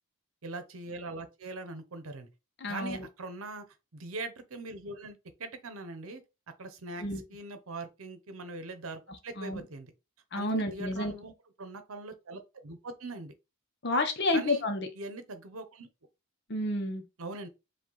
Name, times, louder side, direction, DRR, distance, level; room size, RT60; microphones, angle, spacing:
voice 1, 0.4-2.3 2.7-3.7 3.9-6.2 6.6-9.9 10.3-13.3 14.3-14.6 15.0-15.9 17.2-17.5, right 3 dB, 75° right, 0.8 m, -42 dB
voice 2, 2.6-3.1 7.0-7.2 9.4-9.6 10.3-11.1 13.8-14.9 16.5-17.0, left 2 dB, 50° left, 0.7 m, -30 dB
4.9 x 2.4 x 3.9 m
head